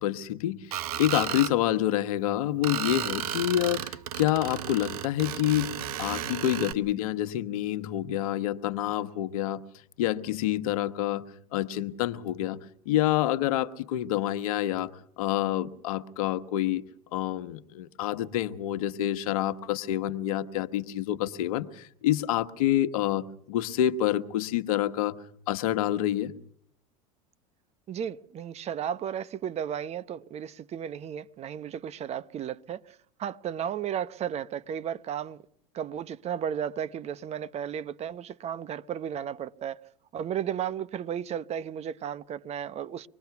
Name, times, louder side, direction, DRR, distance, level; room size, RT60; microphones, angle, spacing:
voice 1, 0.0-9.6 10.0-11.2 11.5-12.6 12.8-16.8 17.1-25.2 25.5-26.3, left 13 dB, 75° left, 1.2 m, -28 dB
Screech, 0.7-1.5 2.6-6.7, right 11 dB, 85° right, 1.0 m, -33 dB
voice 2, 27.9-35.4 35.7-39.8 40.1-43.1, right 9 dB, 35° right, 0.9 m, -34 dB
25.5 x 21.0 x 5.9 m
hypercardioid pair, 100°, 19 cm